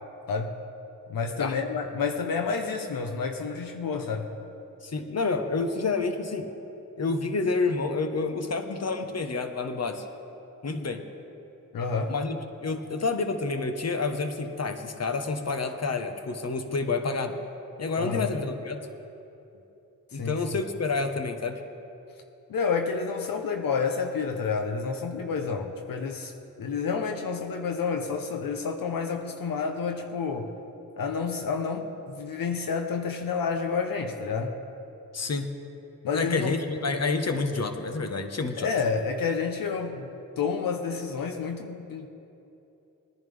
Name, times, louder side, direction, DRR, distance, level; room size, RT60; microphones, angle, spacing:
voice 1, 1.1-4.3 11.7-12.1 18.0-18.3 20.1-20.4 22.5-26.3 26.6-30.5 31.0-34.5 36.0-36.6 38.6-40.1 40.4-42.1, left 5 dB, 80° left, 4 dB, 0.9 m, -29 dB
voice 2, 4.8-6.5 7.0-10.0 10.6-11.0 12.1-17.3 17.8-18.8 20.1-21.6 35.1-35.5 36.1-38.7, left 3 dB, 50° left, 6 dB, 1.2 m, -29 dB
21.0 x 10.5 x 3.5 m, 2.9 s
cardioid pair, 45°, 34 cm